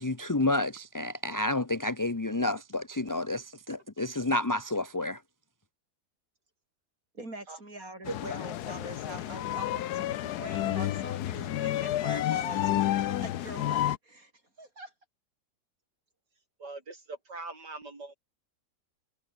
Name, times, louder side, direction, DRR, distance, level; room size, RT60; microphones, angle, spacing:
voice 1, 0.0-5.2, left 2 dB, 15° left, 0.9 m, -30 dB
voice 2, 7.1-14.3 14.6-14.9, right 2 dB, 55° right, 7.9 m, -44 dB
sound 1, 8.0-14.0, left 13 dB, 75° left, 1.2 m, -30 dB
voice 3, 16.6-18.2, right 3 dB, 85° right, 5.6 m, -41 dB
omnidirectional pair, 1.8 m